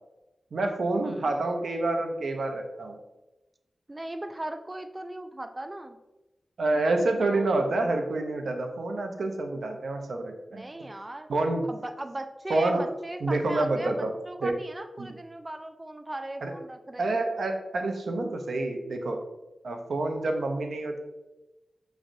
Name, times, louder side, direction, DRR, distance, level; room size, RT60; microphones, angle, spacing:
voice 1, 0.5-3.0 6.6-10.6 11.3-11.7 12.5-12.9 13.2-14.1 14.4-14.6 15.0-15.1 16.4-16.5 17.0-19.2 19.6-21.0, right 2 dB, 85° right, 4 dB, 0.6 m, -28 dB
voice 2, 1.0-1.4 3.9-6.0 7.3-7.5 10.5-11.3 11.7-17.1, right 1 dB, 30° right, 7 dB, 0.3 m, -38 dB
6.1 x 3.1 x 2.6 m, 1.0 s
cardioid pair, 45°, 0 cm